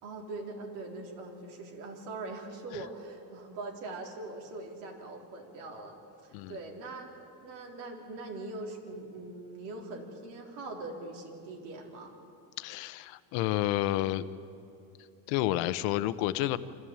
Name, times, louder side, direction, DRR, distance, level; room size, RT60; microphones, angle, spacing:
voice 1, 0.0-12.1, right 2 dB, 80° right, 0 dB, 4.0 m, -42 dB
voice 2, 12.6-14.3 15.3-16.6, left 15 dB, 70° left, 13 dB, 0.9 m, -30 dB
25.5 x 14.5 x 8.8 m, 2.6 s
cardioid pair, 160°, 37 cm